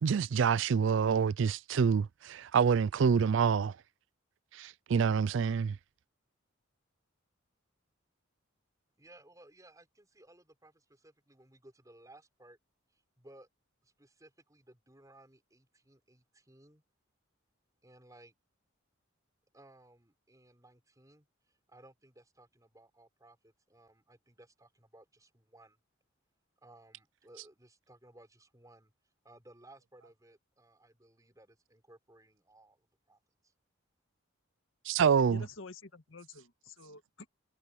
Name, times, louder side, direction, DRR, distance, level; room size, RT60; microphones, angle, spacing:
voice 1, 0.0-3.7 4.6-5.7 34.9-35.4, right 6 dB, 65° right, 0.4 m, -27 dB
voice 2, 9.0-12.6 12.9-13.5 13.8-16.8 17.8-18.3 19.5-25.8 26.6-28.9 29.2-33.5, right 1 dB, 15° right, 5.2 m, -60 dB
voice 3, 35.3-37.3, left 3 dB, 75° left, 1.8 m, -49 dB
head